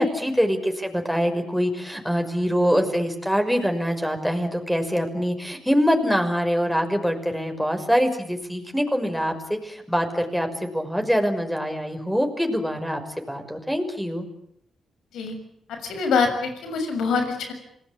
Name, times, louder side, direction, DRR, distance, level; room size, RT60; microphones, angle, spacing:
voice 1, 0.0-13.0 13.3-14.3, equal, ahead, 5 dB, 5.9 m, -24 dB
voice 2, 15.7-17.5, left 5 dB, 85° left, 6 dB, 6.6 m, -24 dB
27.5 x 19.0 x 8.8 m, 0.71 s
cardioid pair, 65°, 0 cm